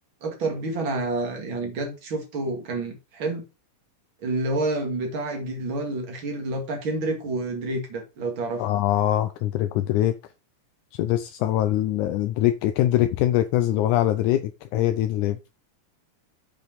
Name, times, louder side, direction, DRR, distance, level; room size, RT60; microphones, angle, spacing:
voice 1, 0.2-3.4 4.2-8.6, right 2 dB, 40° right, 2.6 m, -29 dB
voice 2, 8.6-10.2 10.9-15.4, left 13 dB, 80° left, 2.1 m, -23 dB
8.0 x 5.3 x 5.1 m
omnidirectional pair, 3.7 m